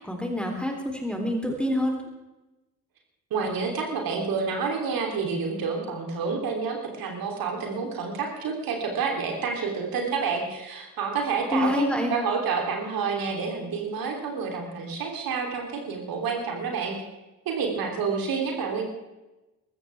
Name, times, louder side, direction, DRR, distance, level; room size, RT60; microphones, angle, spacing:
voice 1, 0.0-2.0 11.5-12.1, left 1 dB, ahead, 2 dB, 3.5 m, -27 dB
voice 2, 3.3-11.8 12.1-17.0 17.4-18.8, right 5 dB, 50° right, 2 dB, 3.5 m, -29 dB
22.0 x 14.5 x 3.6 m, 1.0 s
figure-of-eight pair, 50°, 45 cm